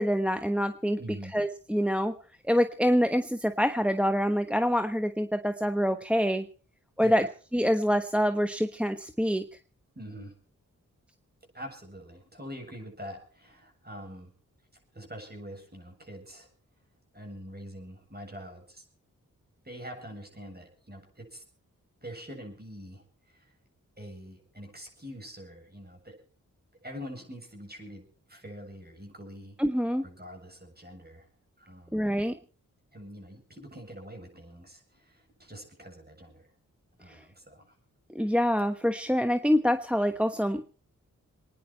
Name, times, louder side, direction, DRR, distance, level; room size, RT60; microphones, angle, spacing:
voice 1, 0.0-1.0 1.3-2.1 2.5-6.5 7.0-7.2 7.5-9.4 29.6-30.0 31.9-32.4 37.1-37.2 38.1-40.7, equal, 5° right, 7 dB, 1.1 m, -26 dB
voice 2, 1.0-1.3 7.0-7.3 10.0-10.3 11.5-14.3 14.9-16.5 17.1-18.9 19.6-21.4 22.0-23.5 24.0-26.2 26.8-29.6 30.0-31.3 31.6-32.1 32.9-36.5 37.0-37.7, equal, 30° right, 2 dB, 7.7 m, -44 dB
26.5 x 10.0 x 4.4 m, 0.40 s
cardioid pair, 40°, 33 cm